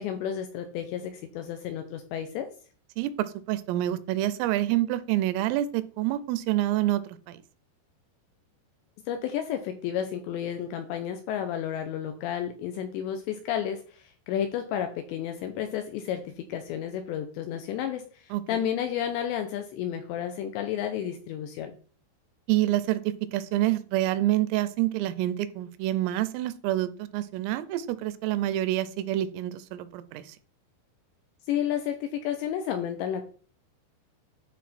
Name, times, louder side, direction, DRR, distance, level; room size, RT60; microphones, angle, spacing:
voice 1, 0.0-2.5 9.1-21.7 31.5-33.2, left 9 dB, 85° left, 7 dB, 2.6 m, -31 dB
voice 2, 3.0-7.4 18.3-18.7 22.5-23.0 23.3-30.2, right 14 dB, 85° right, 14 dB, 3.3 m, -27 dB
11.5 x 4.3 x 4.2 m, 0.41 s
omnidirectional pair, 5.8 m